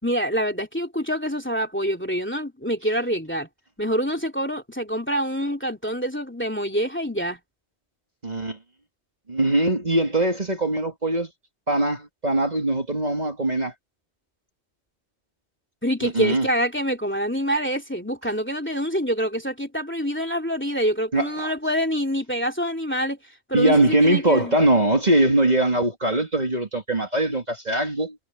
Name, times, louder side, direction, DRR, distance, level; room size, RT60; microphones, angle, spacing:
voice 1, 0.0-3.5 3.8-7.4 15.8-23.2 23.5-24.6, equal, 10° left, 3.0 m, -26 dB
voice 2, 8.2-8.6 9.3-11.3 11.7-13.7 16.0-16.5 21.1-21.5 23.5-28.1, right 1 dB, 35° right, 2.8 m, -21 dB
omnidirectional pair, 1.3 m